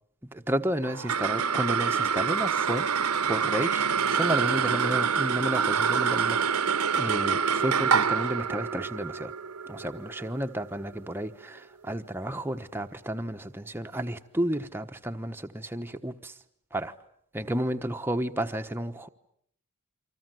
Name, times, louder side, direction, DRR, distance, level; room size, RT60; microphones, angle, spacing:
voice 1, 0.2-2.9 3.3-9.3 9.7-16.4 16.7-17.0 17.3-19.1, right 1 dB, 10° right, 1.1 m, -32 dB
sound 1, 0.8-11.4, right 6 dB, 85° right, 1.0 m, -26 dB
29.5 x 25.0 x 7.7 m
head